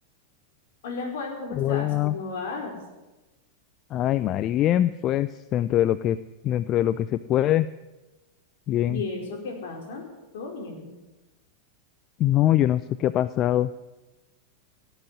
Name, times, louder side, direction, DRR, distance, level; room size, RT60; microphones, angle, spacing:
voice 1, 0.8-2.8 8.9-10.0 10.3-10.9, left 3 dB, 65° left, 2 dB, 4.8 m, -34 dB
voice 2, 1.6-2.1 3.9-6.2 6.4-7.7 8.7-9.0 12.2-13.7, left 12 dB, 40° left, 16 dB, 0.5 m, -23 dB
17.5 x 8.1 x 9.8 m, 1.1 s
hypercardioid pair, 95°, 0 cm